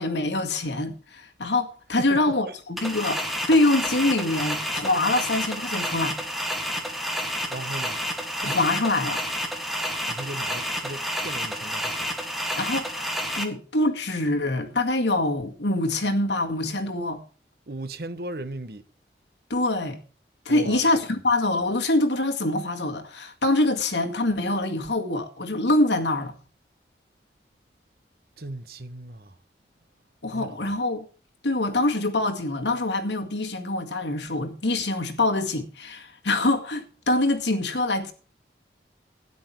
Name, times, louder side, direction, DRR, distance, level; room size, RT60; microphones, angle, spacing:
voice 1, 0.0-3.2 3.5-6.2 8.4-9.2 12.6-17.2 19.5-20.0 20.5-26.3 30.2-31.0 31.4-38.1, left 2 dB, 85° left, 2.0 m, -25 dB
voice 2, 2.0-2.5 7.5-8.0 10.1-12.1 17.7-18.8 20.5-20.9 28.4-29.4 30.3-30.7, right 2 dB, 60° right, 1.1 m, -37 dB
sound 1, 2.8-13.4, equal, ahead, 1.7 m, -30 dB
12.5 x 9.9 x 4.5 m
head